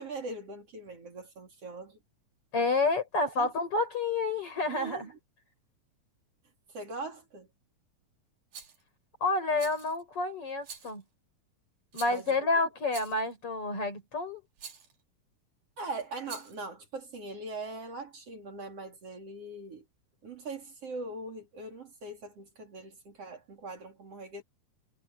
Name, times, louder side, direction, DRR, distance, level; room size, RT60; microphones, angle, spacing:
voice 1, 0.0-2.0 3.4-3.5 4.7-5.1 6.7-7.5 12.1-12.5 15.8-19.8 20.2-24.4, right 2 dB, 50° right, 4.2 m, -41 dB
voice 2, 2.5-5.1 9.2-11.0 11.9-14.4, left 3 dB, 45° left, 5.7 m, -29 dB
Rattle, 8.5-8.8 9.6-10.0 10.6-11.0 11.9-12.4 12.9-13.3 14.6-14.9 16.2-16.6, right 6 dB, 70° right, 4.9 m, -46 dB
omnidirectional pair, 3.7 m